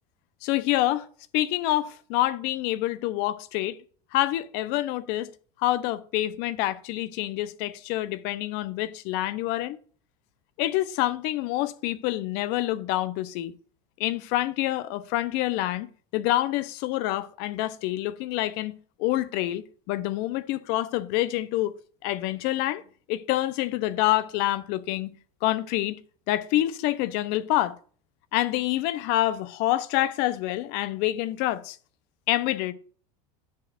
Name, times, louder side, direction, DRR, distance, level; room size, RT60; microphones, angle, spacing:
voice 1, 0.4-1.1 1.3-3.8 4.1-5.3 5.6-9.8 10.6-13.5 14.0-21.7 22.0-22.8 23.1-25.2 25.4-26.0 26.3-27.8 28.3-31.8 32.3-32.7, left 15 dB, 60° left, 0.7 m, -27 dB
10.5 x 6.7 x 2.4 m
hypercardioid pair, 100°, 19 cm